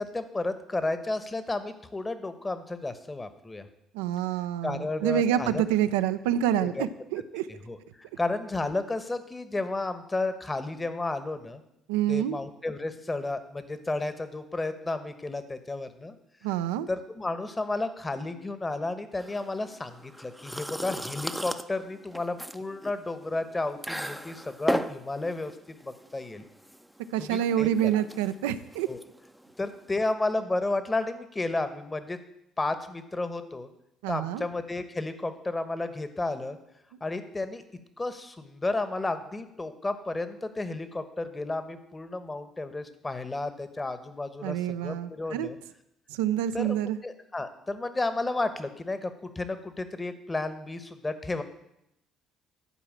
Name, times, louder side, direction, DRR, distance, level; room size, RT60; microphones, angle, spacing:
voice 1, 0.0-3.7 4.6-5.6 6.6-6.9 7.7-11.6 12.1-16.2 16.9-25.5 25.8-26.4 27.2-27.9 28.9-29.0 29.6-32.2 32.6-33.7 34.1-36.6 37.0-37.6 38.0-45.6 46.5-46.8 47.0-51.4, left 2 dB, 20° left, 10 dB, 1.1 m, -32 dB
voice 2, 3.9-7.5 11.9-12.4 16.4-16.9 27.1-28.9 34.0-34.5 44.4-45.5 46.1-47.0, right 11 dB, 85° right, 12 dB, 0.5 m, -27 dB
sound 1, 19.2-30.1, equal, ahead, 0.6 m, -37 dB
11.0 x 4.7 x 7.3 m, 0.83 s
hypercardioid pair, 60°, 0 cm